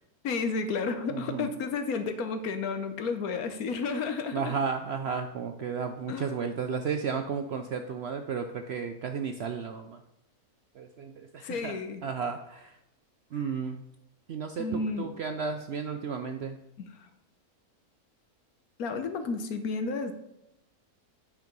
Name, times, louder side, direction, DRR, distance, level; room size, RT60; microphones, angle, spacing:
voice 1, 0.2-4.6 6.1-6.4 11.4-12.0 14.6-15.1 16.8-16.9 18.8-20.1, left 4 dB, 75° left, 9 dB, 1.3 m, -32 dB
voice 2, 1.1-1.5 4.3-10.0 10.8-11.8 12.0-12.7 13.3-13.8 14.3-16.6, right 6 dB, 65° right, 6 dB, 0.6 m, -33 dB
9.3 x 4.8 x 5.2 m, 0.87 s
omnidirectional pair, 1.6 m